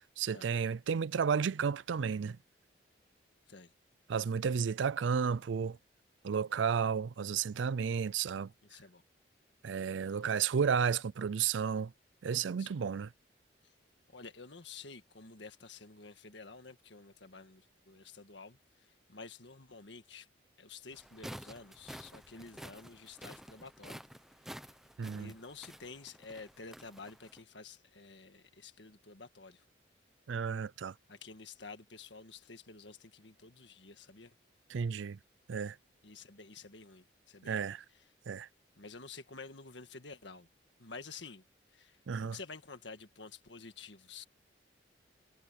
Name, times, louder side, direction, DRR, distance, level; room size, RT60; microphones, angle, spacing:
voice 1, 0.2-2.4 4.1-5.8 6.2-8.5 9.6-11.9 12.2-13.1 25.0-25.3 30.3-30.9 34.7-35.2 35.5-35.8 37.5-37.8 38.3-38.5 42.1-42.4, right 6 dB, 75° right, 0.4 m, -32 dB
voice 2, 8.6-9.0 10.0-10.2 12.6-12.9 14.1-20.3 20.6-24.0 24.4-24.7 25.1-29.6 31.1-34.3 36.0-38.0 38.8-40.5 40.8-41.4 41.7-42.0 42.2-44.3, left 4 dB, 70° left, 1.7 m, -50 dB
sound 1, 20.9-27.4, equal, ahead, 0.9 m, -50 dB
head